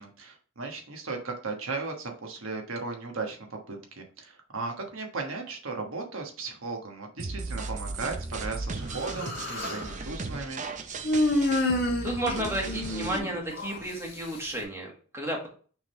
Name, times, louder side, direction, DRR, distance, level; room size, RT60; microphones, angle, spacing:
voice 1, 0.0-10.6, right 3 dB, 75° right, 2 dB, 1.3 m, -36 dB
sound 1, 7.2-13.2, right 3 dB, 35° right, 0.6 m, -36 dB
Human voice, 8.9-9.9 11.0-13.8, left 1 dB, 55° left, 1.6 m, -28 dB
voice 2, 12.0-15.5, right 1 dB, 10° right, -1 dB, 1.7 m, -32 dB
6.1 x 3.8 x 4.3 m, 0.41 s
head